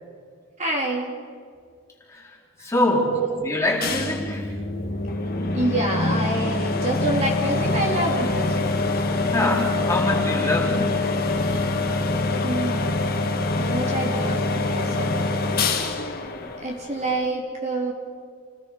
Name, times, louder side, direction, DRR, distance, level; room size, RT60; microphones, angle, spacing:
voice 1, 0.6-1.2 2.6-2.7 3.2-3.3 5.5-8.6 12.4-13.0 13.6-15.1 16.6-17.9, right 1 dB, 30° right, 0 dB, 3.5 m, -27 dB
voice 2, 2.6-4.5 9.3-11.1, left 1 dB, 15° left, -2 dB, 4.2 m, -24 dB
sound 1, 3.8-17.3, left 3 dB, 45° left, 2.1 m, -25 dB
29.5 x 19.0 x 6.8 m, 2.1 s
head